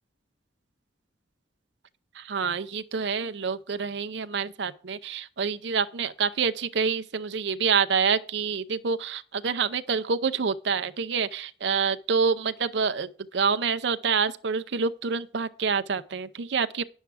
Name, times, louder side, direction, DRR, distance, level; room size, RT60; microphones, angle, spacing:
voice 1, 2.1-16.8, right 5 dB, 65° right, 0.6 m, -27 dB
9.3 x 7.3 x 4.8 m
head